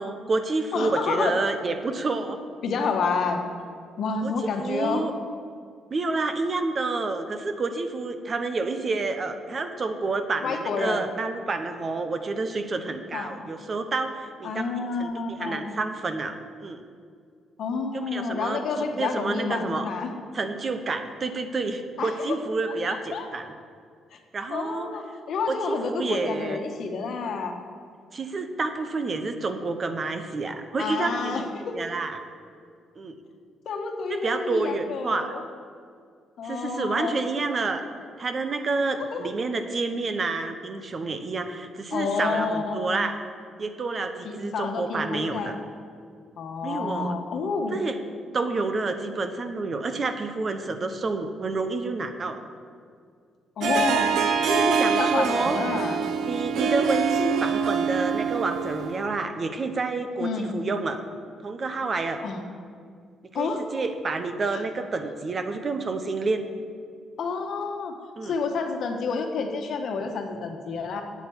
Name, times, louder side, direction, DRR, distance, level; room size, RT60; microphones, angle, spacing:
voice 1, 0.0-2.4 4.2-4.3 4.6-5.1 5.9-14.6 15.0-16.8 17.9-18.6 18.9-19.9 20.3-23.5 24.3-24.9 25.5-26.6 28.1-32.2 33.0-33.2 34.1-35.3 36.4-37.8 38.2-43.2 43.6-45.5 46.6-47.1 47.7-48.0 48.3-52.4 53.6-53.7 54.5-55.6 56.3-61.0 61.4-62.2 63.3-66.5 68.2-68.3, right 3 dB, 40° right, 8 dB, 0.9 m, -29 dB
voice 2, 0.7-1.4 2.6-3.5 4.0-5.1 10.4-11.1 13.1-13.4 14.4-15.6 17.6-20.1 22.0-22.1 22.9-23.3 24.1-24.2 24.5-27.6 30.8-31.8 33.6-35.4 36.4-37.2 39.1-39.3 41.9-42.9 44.2-45.6 46.4-47.8 53.6-56.0 60.2-60.6 62.2-62.4 63.3-63.6 64.5-64.6 67.2-67.9 68.2-71.0, left 4 dB, 65° left, 4 dB, 1.3 m, -29 dB
Harp, 53.6-59.1, right 6 dB, 75° right, 0.8 m, -25 dB
8.4 x 8.4 x 7.2 m, 2.2 s
cardioid pair, 90°, 0 cm